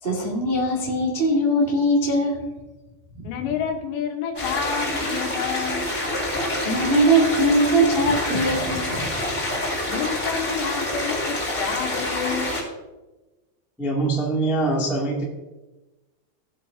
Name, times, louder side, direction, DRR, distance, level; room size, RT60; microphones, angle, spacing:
voice 1, 0.0-2.4 6.6-9.1, right 1 dB, 80° right, -2 dB, 0.5 m, -21 dB
voice 2, 3.2-5.9 9.9-12.6, left 7 dB, 75° left, 3 dB, 3.4 m, -29 dB
sound 1, 4.3-12.6, left 1 dB, 20° left, 2.1 m, -27 dB
voice 3, 13.8-15.2, right 2 dB, ahead, -4 dB, 0.7 m, -23 dB
17.0 x 8.4 x 2.8 m, 1.1 s
omnidirectional pair, 5.1 m